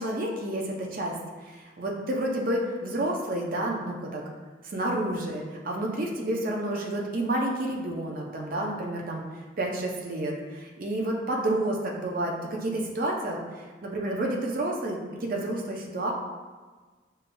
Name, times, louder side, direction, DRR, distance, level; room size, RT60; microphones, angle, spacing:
voice 1, 0.0-4.2 4.6-9.2 9.6-13.4 13.8-16.1, right 1 dB, 50° right, -1 dB, 0.5 m, -30 dB
6.4 x 2.5 x 2.2 m, 1.4 s
head